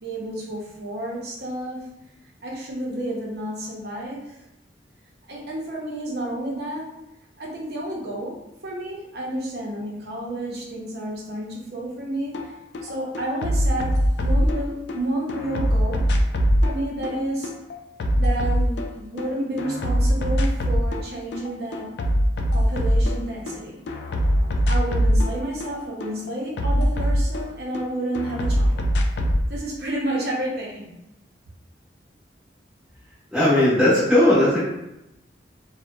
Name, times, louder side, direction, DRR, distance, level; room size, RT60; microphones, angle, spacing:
voice 1, 0.0-1.8 2.4-4.4 5.3-6.8 7.4-8.4 8.6-12.4 12.8-13.9 14.2-16.0 16.6-17.5 18.1-21.9 22.5-23.8 24.7-28.8 29.5-30.9, right 1 dB, 60° right, -3 dB, 0.6 m, -30 dB
sound 1, 12.3-12.5 12.7-15.0 15.3-19.3 19.6-21.1 21.3-23.6 23.9-27.8 28.2-29.4, equal, 70° left, 0.3 m, -22 dB
voice 2, 33.3-34.6, left 1 dB, 5° right, -12 dB, 0.8 m, -17 dB
2.6 x 2.1 x 2.2 m, 0.90 s
head